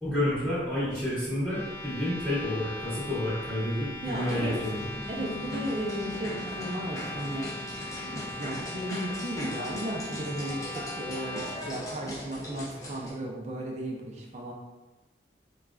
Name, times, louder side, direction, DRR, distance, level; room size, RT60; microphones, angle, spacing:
voice 1, 0.0-4.8, left 1 dB, 5° right, -15 dB, 1.0 m, -30 dB
sound 1, 1.4-11.6, left 2 dB, 80° left, 0.7 m, -40 dB
voice 2, 4.0-4.6 5.1-7.5 8.0-14.5, right 1 dB, 40° right, -2 dB, 0.5 m, -35 dB
sound 2, 4.1-13.1, left 1 dB, 20° left, 0.5 m, -40 dB
3.3 x 2.4 x 2.3 m, 1.1 s
head